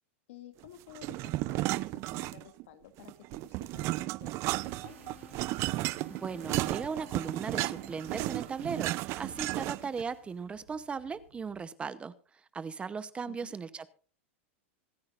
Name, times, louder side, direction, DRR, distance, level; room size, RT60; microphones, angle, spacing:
voice 1, 0.3-5.2 13.3-13.6, left 11 dB, 70° left, 9 dB, 2.2 m, -53 dB
sound 1, 0.9-2.6 3.0-10.0, right 19 dB, 40° right, 0.5 m, -34 dB
sound 2, 4.5-11.6, right 10 dB, 85° right, 5.0 m, -57 dB
Bowed string instrument, 4.6-10.6, left 7 dB, 15° left, 1.3 m, -57 dB
voice 2, 6.1-12.1 12.5-13.9, right 5 dB, 15° right, 15 dB, 0.9 m, -37 dB
25.5 x 9.7 x 2.5 m, 0.37 s
supercardioid pair, 135°, 7 cm